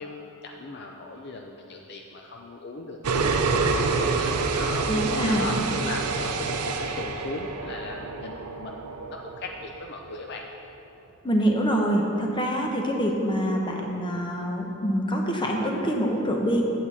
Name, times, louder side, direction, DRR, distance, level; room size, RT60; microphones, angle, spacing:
voice 1, 0.0-4.1 4.5-10.5, left 2 dB, 50° left, 2 dB, 0.4 m, -38 dB
sound 1, 3.0-9.9, right 4 dB, 90° right, 0.6 m, -27 dB
voice 2, 4.9-5.5 11.2-16.6, equal, 20° left, 1 dB, 0.8 m, -25 dB
8.5 x 7.5 x 4.1 m, 2.9 s
head